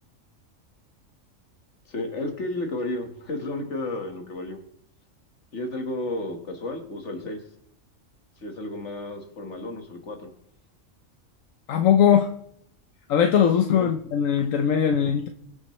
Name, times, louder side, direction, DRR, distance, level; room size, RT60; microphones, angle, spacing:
voice 1, 1.9-4.6 5.5-7.4 8.4-10.3 13.7-13.9, left 2 dB, 60° left, 4 dB, 1.9 m, -32 dB
voice 2, 11.7-12.3 13.1-15.3, left 8 dB, 80° left, 5 dB, 1.2 m, -20 dB
23.0 x 8.1 x 3.2 m, 0.71 s
omnidirectional pair, 1.3 m